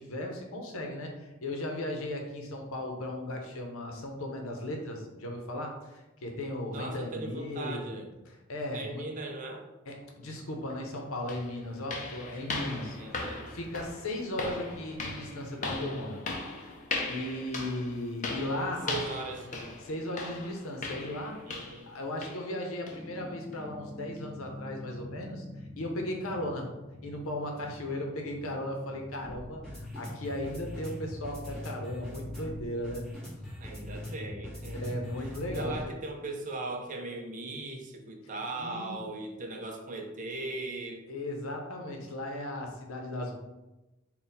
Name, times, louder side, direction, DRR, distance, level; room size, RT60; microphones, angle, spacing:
voice 1, 0.0-7.9 8.3-9.0 9.9-13.0 13.5-16.2 16.6-16.7 17.1-19.0 19.8-21.4 21.9-25.4 25.8-26.7 27.0-33.0 34.7-35.9 38.6-39.0 41.1-43.4, left 1 dB, 70° left, 2 dB, 0.7 m, -36 dB
voice 2, 6.7-8.1 8.7-9.7 13.0-13.5 18.9-19.5 21.5-21.9 33.6-41.1, right 2 dB, 35° right, 3 dB, 0.5 m, -39 dB
sound 1, 10.7-10.8 11.3-21.9 22.2-22.5 22.9-23.0 23.5-23.6 24.2-24.3, left 3 dB, 35° left, 0.5 m, -38 dB
sound 2, 22.9-35.9, left 1 dB, 5° left, 1.3 m, -43 dB
4.0 x 2.2 x 4.0 m, 1.0 s
head